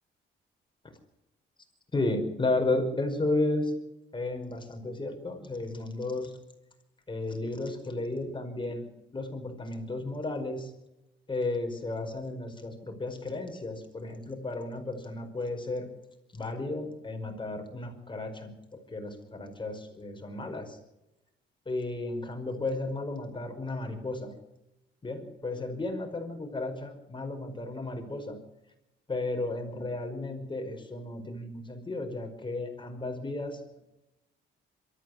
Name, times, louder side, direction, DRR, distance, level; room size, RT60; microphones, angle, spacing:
voice 1, 1.9-3.7 4.1-6.3 7.1-10.7 11.3-15.9 16.3-20.8 21.6-24.3 25.0-28.4 29.1-33.8, left 2 dB, 25° left, 4 dB, 5.2 m, -33 dB
23.0 x 14.0 x 9.5 m, 0.94 s
cardioid pair, 90°, 20 cm